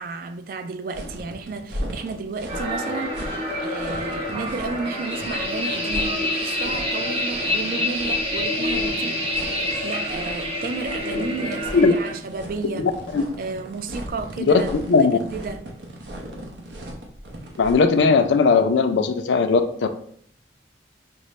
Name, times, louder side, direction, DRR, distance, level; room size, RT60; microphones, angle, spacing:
voice 1, 0.0-9.2 9.5-12.9 13.4-15.7, right 4 dB, 50° right, 0.3 m, -32 dB
sound 1, 0.9-18.0, right 1 dB, 75° right, 0.7 m, -37 dB
sound 2, 2.5-12.1, left 1 dB, 30° right, 0.8 m, -27 dB
voice 2, 12.7-13.2 14.4-15.2 17.6-19.9, left 4 dB, 85° left, 0.4 m, -18 dB
5.1 x 2.0 x 3.1 m
head